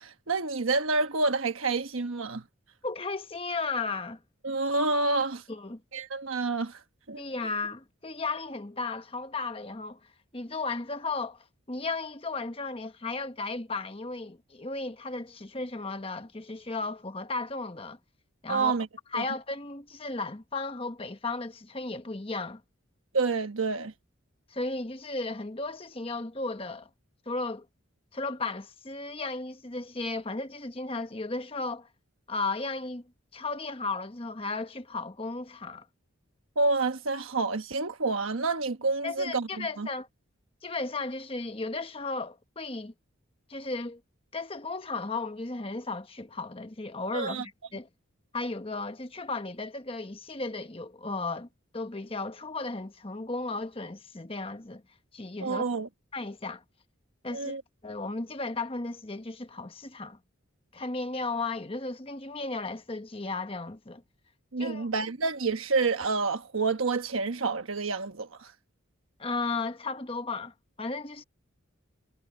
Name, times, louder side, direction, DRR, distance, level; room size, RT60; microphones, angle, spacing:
voice 1, 0.0-2.4 4.4-5.4 5.9-6.8 7.1-7.2 18.5-18.9 19.1-19.2 23.1-23.9 36.6-39.9 47.1-47.4 55.4-55.9 57.3-57.6 64.5-68.5, right 3 dB, 80° right, 1.1 m, -28 dB
voice 2, 2.8-4.2 5.5-5.8 7.2-10.0 10.3-18.0 18.4-18.7 19.1-22.6 24.5-26.9 27.3-27.7 28.1-31.9 32.3-33.0 33.3-35.9 39.0-40.1 40.6-42.9 43.5-44.0 44.3-47.9 48.3-51.5 51.7-54.8 55.1-55.6 56.1-56.6 57.2-57.6 57.8-60.2 60.7-64.0 64.6-64.9 69.2-71.2, left 3 dB, 25° left, 1.1 m, -35 dB
head